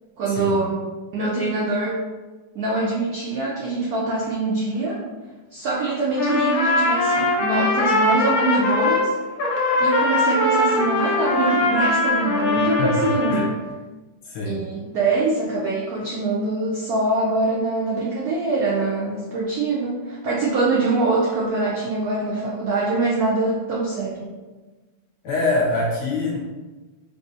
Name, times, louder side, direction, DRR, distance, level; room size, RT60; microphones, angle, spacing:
voice 1, 0.2-0.8 1.1-2.0 2.5-5.0 5.5-9.1 9.8-13.5 14.4-24.3, right 3 dB, 80° right, -5 dB, 0.8 m, -24 dB
Trumpet, 6.1-9.1 9.4-13.5, left 2 dB, 80° left, 0.8 m, -21 dB
voice 2, 12.8-13.5 14.2-14.6 25.2-26.4, left 2 dB, 65° left, -4 dB, 1.2 m, -24 dB
3.5 x 2.7 x 2.6 m, 1.2 s
omnidirectional pair, 2.2 m